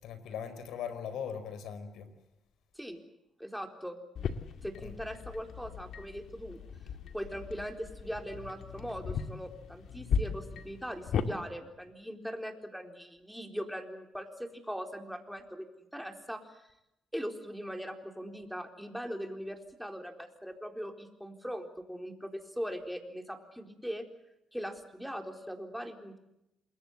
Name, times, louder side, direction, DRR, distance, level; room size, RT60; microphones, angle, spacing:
voice 1, 0.0-2.1 4.8-4.9, left 7 dB, 80° left, 12 dB, 4.5 m, -39 dB
voice 2, 3.4-4.0 4.6-6.6 7.1-15.7 15.9-16.4 17.1-24.0 24.5-26.2, equal, ahead, 5 dB, 4.1 m, -40 dB
sound 1, 4.2-11.3, left 6 dB, 65° left, 2.1 m, -37 dB
28.0 x 21.5 x 8.1 m, 0.88 s
cardioid pair, 90°, 0 cm